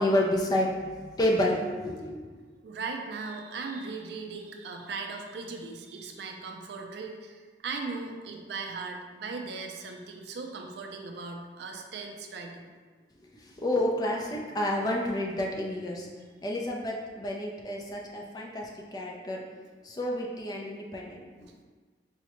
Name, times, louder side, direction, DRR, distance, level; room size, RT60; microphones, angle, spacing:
voice 1, 0.0-2.4 13.3-16.1 16.4-19.4 19.8-21.5, left 1 dB, 20° left, -1 dB, 0.4 m, -30 dB
voice 2, 2.6-12.7 21.5-21.6, right 4 dB, 65° right, 3 dB, 0.4 m, -38 dB
4.7 x 2.1 x 2.9 m, 1.4 s
head